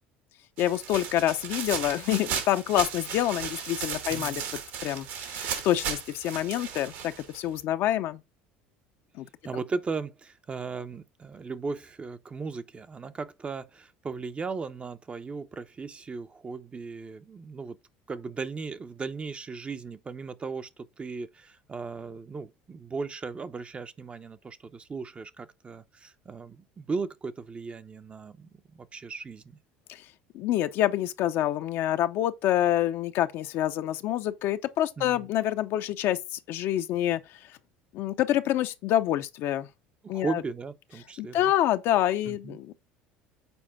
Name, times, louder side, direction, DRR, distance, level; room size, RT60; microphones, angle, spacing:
voice 1, 0.6-4.4 4.8-8.2 9.2-9.3 29.9-30.0 30.3-37.2 37.9-39.7 40.1-40.4 41.2-42.7, left 12 dB, 60° left, 0.7 m, -27 dB
sound 1, 0.6-7.6, right 8 dB, 70° right, 2.0 m, -35 dB
voice 2, 4.1-4.4 9.4-17.8 18.1-29.6 35.0-35.3 40.0-41.5 42.3-42.6, right 4 dB, 25° right, 0.7 m, -37 dB
7.0 x 4.2 x 3.6 m
supercardioid pair, 85°, 5 cm